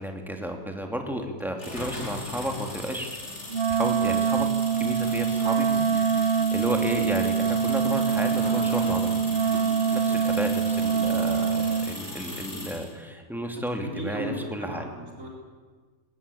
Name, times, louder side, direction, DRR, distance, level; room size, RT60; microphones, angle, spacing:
voice 1, 0.0-3.2 3.7-4.5 4.8-9.1 9.9-14.9, equal, ahead, 3 dB, 2.7 m, -32 dB
sound 1, 1.6-12.9, left 2 dB, 50° left, 4.7 m, -38 dB
Wind instrument woodwind instrument, 3.5-11.9, right 6 dB, 50° right, 1.2 m, -24 dB
voice 2, 13.8-15.3, right 1 dB, 65° right, -2 dB, 4.5 m, -36 dB
20.0 x 19.0 x 8.6 m, 1.4 s
omnidirectional pair, 1.5 m